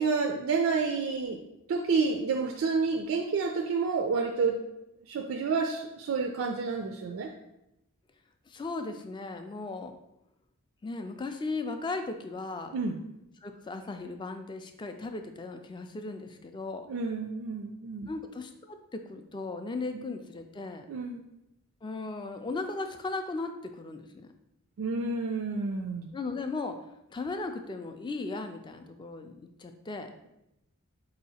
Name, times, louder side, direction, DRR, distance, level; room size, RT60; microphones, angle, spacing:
voice 1, 0.0-1.4 1.7-4.6 5.1-7.3 12.7-13.0 16.9-18.1 19.9-20.0 20.9-21.2 24.8-26.1, right 4 dB, 65° right, 3 dB, 0.3 m, -29 dB
voice 2, 8.5-9.9 10.8-12.7 13.4-16.9 18.1-20.9 21.8-24.3 26.1-26.8 27.1-30.1, left 3 dB, 20° left, 7 dB, 0.3 m, -37 dB
4.0 x 2.7 x 4.1 m, 0.86 s
head